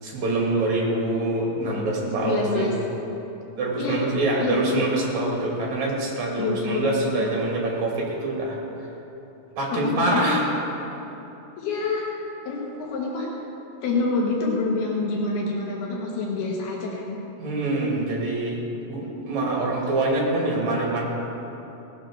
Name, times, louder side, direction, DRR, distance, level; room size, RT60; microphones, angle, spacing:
voice 1, 0.0-2.7 3.6-8.6 9.6-10.4 17.4-18.6 18.9-21.0, right 2 dB, 50° right, -2 dB, 3.4 m, -25 dB
voice 2, 2.2-2.7 3.8-4.0 4.4-4.8 6.4-7.4 9.7-10.4 11.6-12.0 12.4-13.3 13.8-17.2 19.5-19.6 19.8-20.0, left 3 dB, 85° left, -3 dB, 3.4 m, -27 dB
17.5 x 7.7 x 6.3 m, 3.0 s
omnidirectional pair, 4.4 m